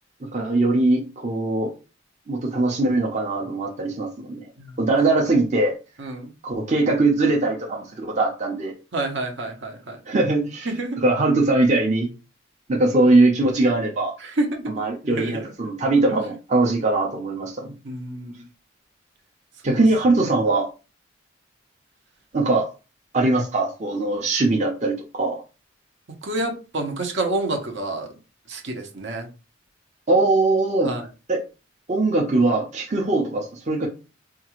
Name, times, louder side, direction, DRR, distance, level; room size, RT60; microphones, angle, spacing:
voice 1, 0.2-1.7 2.3-4.4 4.8-5.7 6.4-8.7 10.1-10.7 11.0-12.1 12.7-14.1 14.7-17.7 19.6-20.7 22.3-22.7 23.1-25.4 30.1-30.9 31.3-31.4 31.9-33.9, right 2 dB, 35° right, 0.7 m, -21 dB
voice 2, 6.0-6.3 8.9-10.0 10.7-11.0 14.2-14.6 15.0-15.5 17.8-18.4 19.6-19.8 26.2-28.1 28.5-29.3 30.8-31.0, right 2 dB, 65° right, 0.9 m, -28 dB
4.4 x 2.4 x 3.0 m
head